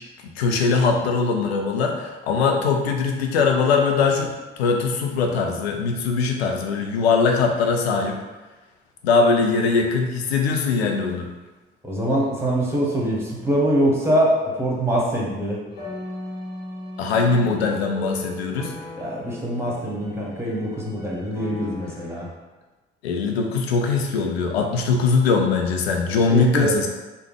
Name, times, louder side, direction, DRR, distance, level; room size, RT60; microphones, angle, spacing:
voice 1, 0.4-8.2 9.0-11.3 17.0-18.7 23.0-26.9, left 4 dB, 80° left, 3 dB, 0.5 m, -21 dB
voice 2, 11.8-15.6 19.0-22.3 26.3-26.7, right 1 dB, 10° right, -3 dB, 1.1 m, -23 dB
sound 1, 15.7-22.3, left 1 dB, 65° left, 1.0 m, -38 dB
3.3 x 2.2 x 3.3 m, 1.2 s
figure-of-eight pair, 50°, 30 cm